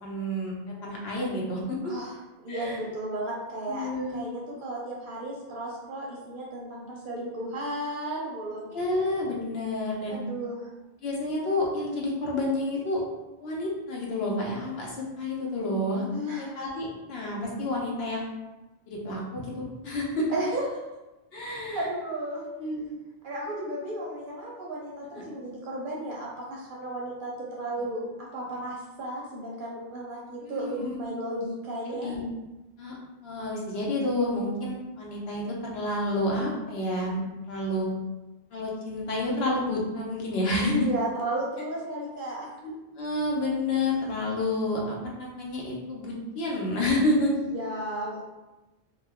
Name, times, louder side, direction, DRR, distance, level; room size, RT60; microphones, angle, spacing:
voice 1, 0.0-0.5 0.8-1.9 2.5-2.8 3.8-4.3 8.7-10.2 11.0-13.0 13.4-16.1 16.3-18.3 18.9-20.3 21.3-21.9 22.6-22.9 27.8-27.9 30.4-31.0 31.9-32.2 32.8-33.0 33.2-37.2 37.5-37.9 38.5-40.7 42.6-47.4, left 1 dB, 65° left, -3 dB, 0.9 m, -29 dB
voice 2, 2.4-3.9 4.1-8.8 10.1-10.7 16.1-16.6 20.3-20.8 21.4-22.4 23.2-27.3 27.6-32.1 40.6-42.5 47.2-48.3, right 1 dB, 60° right, -4 dB, 0.6 m, -34 dB
2.3 x 2.1 x 3.4 m, 1.1 s
omnidirectional pair, 1.1 m